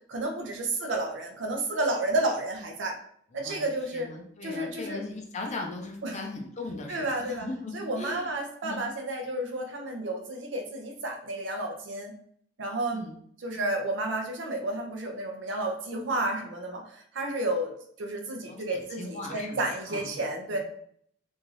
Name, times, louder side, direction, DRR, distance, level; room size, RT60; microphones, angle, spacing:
voice 1, 0.1-2.9 3.3-4.1 4.4-5.0 6.0-6.2 6.9-7.5 7.7-12.1 12.6-13.1 13.4-17.7 18.0-20.6, right 2 dB, 65° right, 3 dB, 0.5 m, -31 dB
voice 2, 3.3-8.3 8.6-8.9 12.9-13.2 18.5-20.2 20.5-20.6, left 2 dB, 40° left, 2 dB, 0.5 m, -39 dB
2.6 x 2.4 x 3.1 m, 0.64 s
head